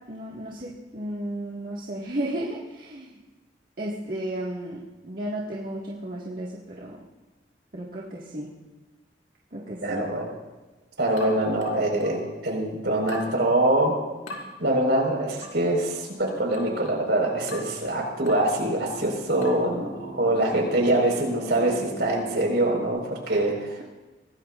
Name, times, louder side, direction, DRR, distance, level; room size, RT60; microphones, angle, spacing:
voice 1, 0.1-3.2 3.8-7.0 7.7-8.5 9.5-10.0 23.3-23.4, right 1 dB, 50° right, -5 dB, 1.9 m, -34 dB
voice 2, 9.8-10.3 11.0-13.9 14.6-23.8, right 1 dB, 65° right, 0 dB, 4.9 m, -24 dB
sound 1, 11.2-12.3 13.1-13.4 14.3-14.5 15.4-15.6 16.5-16.8 17.5-17.8 18.3-18.5 19.4-19.7, left 1 dB, 85° left, 4.5 m, -40 dB
sound 2, 17.7-22.9, right 2 dB, 60° left, 2.7 m, -39 dB
24.0 x 18.5 x 2.5 m, 1.2 s
head